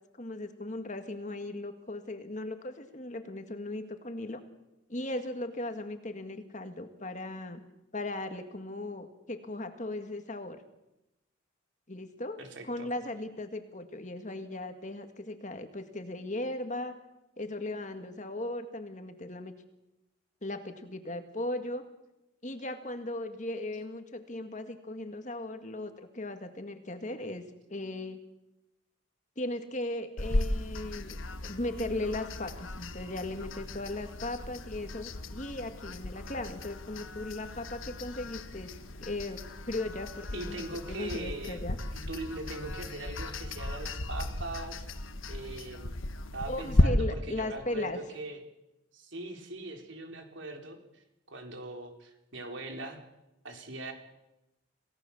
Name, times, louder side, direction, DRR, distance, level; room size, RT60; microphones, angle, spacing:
voice 1, 0.2-4.4 4.9-7.6 7.9-10.6 11.9-17.0 17.4-19.5 20.4-21.8 22.4-28.2 29.4-39.4 39.7-41.8 46.5-48.0, left 2 dB, 35° left, 8 dB, 1.9 m, -37 dB
voice 2, 12.4-12.9 40.3-41.7 41.9-44.9 45.3-46.0 46.3-48.4 48.9-53.0 53.4-53.9, right 2 dB, 70° right, 4 dB, 3.9 m, -41 dB
sound 1, 30.2-46.8, left 1 dB, 80° left, 1.5 m, -35 dB
28.0 x 17.5 x 7.1 m, 0.92 s
head